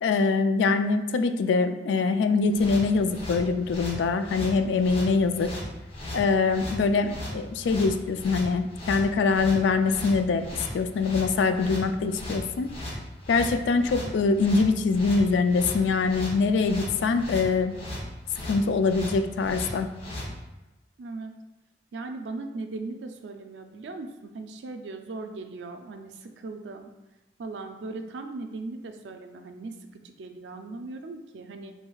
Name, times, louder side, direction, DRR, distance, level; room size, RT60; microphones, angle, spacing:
voice 1, 0.0-5.5 6.1-10.4 10.7-12.7 13.3-17.7 18.5-19.9, left 4 dB, 85° left, 9 dB, 0.3 m, -24 dB
sound 1, 2.5-20.3, left 1 dB, 35° left, 0.8 m, -37 dB
voice 2, 21.0-21.4 21.9-26.9 27.4-31.7, right 3 dB, 80° right, 6 dB, 0.4 m, -38 dB
4.6 x 3.2 x 2.3 m, 1.1 s
head